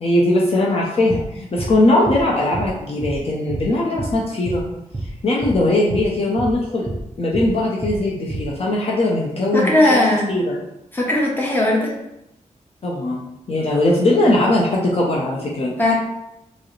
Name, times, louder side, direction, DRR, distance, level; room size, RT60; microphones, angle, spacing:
voice 1, 0.0-4.6 5.2-6.9 7.2-10.0 10.3-10.6 12.8-13.2 13.5-15.7, left 1 dB, 50° left, -4 dB, 0.6 m, -19 dB
sound 1, 1.1-1.3 1.6-1.7 2.1-2.2 2.5-2.7 3.0-3.2 3.5-3.7 4.0-4.1 4.5-4.6 4.9-5.1 5.4-5.6 5.9-6.1 6.4-6.5 6.9-7.0 7.3-7.5 7.8-8.0 8.3-8.5, right 2 dB, 20° right, 0.5 m, -28 dB
voice 2, 9.5-10.3 10.9-11.9 15.8-15.9, left 1 dB, 15° left, -3 dB, 0.8 m, -17 dB
4.5 x 2.0 x 3.1 m, 0.85 s
wide cardioid pair, 135°, 13 cm